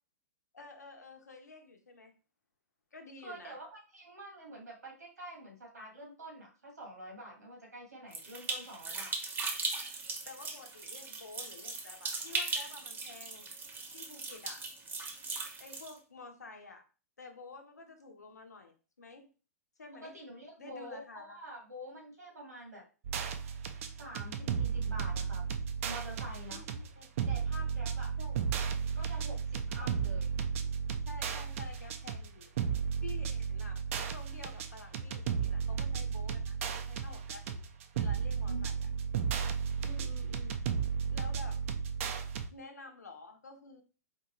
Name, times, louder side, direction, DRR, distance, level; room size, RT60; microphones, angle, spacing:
voice 1, 0.5-2.1 2.9-3.6 10.3-13.5 13.9-14.7 15.6-16.8 17.2-19.3 19.8-20.1 20.6-21.4 26.5-27.1 28.2-28.4 29.8-29.9 31.0-32.6 33.0-37.6 37.9-38.7 39.8-40.5 41.1-41.6 42.5-43.8, left 3 dB, 80° left, 5 dB, 0.8 m, -50 dB
voice 2, 3.2-9.2 19.9-22.8 24.0-25.5 25.8-26.6 27.3-28.1 28.9-30.3 38.5-39.0, right 1 dB, 85° right, -1 dB, 1.8 m, -47 dB
sound 1, 8.1-15.9, right 3 dB, 20° right, 0.9 m, -38 dB
sound 2, 23.0-42.5, right 6 dB, 55° right, 0.5 m, -34 dB
4.4 x 2.5 x 3.1 m, 0.36 s
figure-of-eight pair, 110°, 9 cm